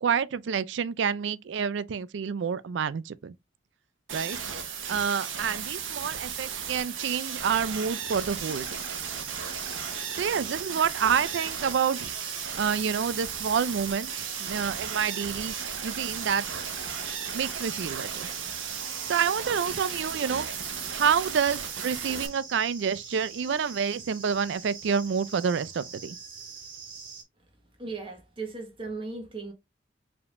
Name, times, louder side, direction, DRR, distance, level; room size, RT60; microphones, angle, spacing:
voice 1, 0.0-3.3 4.1-4.5 4.9-8.8 10.2-12.1 12.6-14.1 14.4-15.5 15.8-16.4 17.3-18.3 19.1-20.5 20.9-26.2, right 7 dB, 70° right, 0.4 m, -28 dB
sound 1, 4.1-22.3, right 7 dB, 90° right, 1.0 m, -35 dB
sound 2, 8.1-27.2, right 5 dB, 45° right, 1.8 m, -44 dB
voice 2, 27.8-29.5, right 3 dB, 25° right, 1.4 m, -37 dB
4.8 x 3.5 x 2.5 m
head